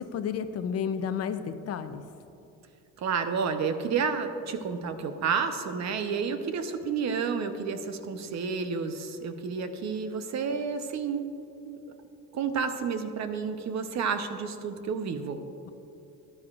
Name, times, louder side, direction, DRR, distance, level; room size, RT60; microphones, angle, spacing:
voice 1, 0.0-2.0, left 7 dB, 45° left, 10 dB, 0.6 m, -31 dB
voice 2, 3.0-11.3 11.6-11.8 12.3-15.4, right 5 dB, 55° right, 8 dB, 0.8 m, -30 dB
13.5 x 11.0 x 2.4 m, 2.7 s
cardioid pair, 110°, 34 cm